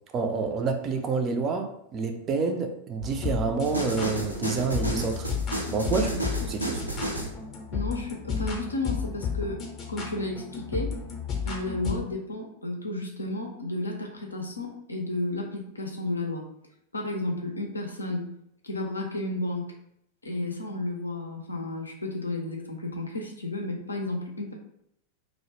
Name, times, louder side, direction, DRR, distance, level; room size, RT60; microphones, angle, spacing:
voice 1, 0.1-5.3 5.7-6.1 6.5-6.8, right 4 dB, 30° right, 5 dB, 0.3 m, -28 dB
sound 1, 3.0-11.9, left 6 dB, 30° left, 0.6 m, -33 dB
sound 2, 3.6-7.4, right 1 dB, 90° right, 0.4 m, -32 dB
voice 2, 7.7-11.0 11.4-16.5 16.9-18.3 18.6-19.7 20.2-24.5, left 2 dB, 80° left, 1 dB, 0.5 m, -32 dB
2.0 x 2.0 x 3.0 m, 0.73 s
figure-of-eight pair, 90°, 0 cm